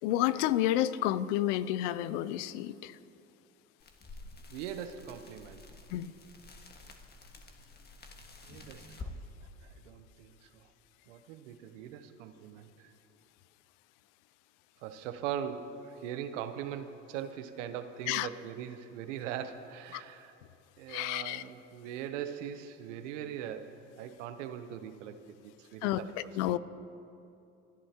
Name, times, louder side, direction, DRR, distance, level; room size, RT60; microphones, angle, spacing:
voice 1, 0.0-2.9 5.9-6.1 18.1-18.3 19.9-20.0 20.9-21.4 25.8-26.0 26.4-26.6, left 13 dB, 75° left, 16 dB, 0.6 m, -30 dB
sound 1, 3.8-9.1, left 3 dB, 25° left, 1.7 m, -50 dB
voice 2, 4.5-5.6 8.4-9.1 9.6-10.7 11.1-12.9 14.8-20.3 20.8-25.2 25.4-26.1 26.5-26.6, right 9 dB, 80° right, 10 dB, 0.9 m, -41 dB
28.5 x 11.0 x 2.9 m, 2.7 s
hypercardioid pair, 70°, 36 cm